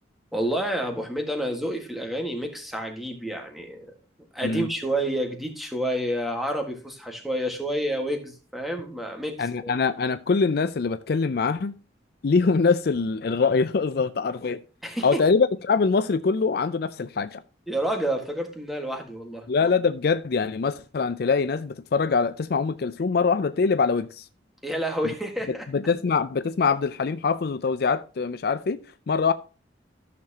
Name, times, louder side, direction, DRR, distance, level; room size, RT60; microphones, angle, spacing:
voice 1, 0.3-3.9 4.3-9.7 14.8-15.2 17.7-19.5 24.6-25.7, right 1 dB, ahead, 1.6 m, -29 dB
voice 2, 9.4-11.8 12.2-14.6 15.0-17.4 19.5-24.2 25.0-25.1 25.5-29.3, left 4 dB, 55° left, 0.4 m, -24 dB
14.0 x 6.7 x 2.8 m
head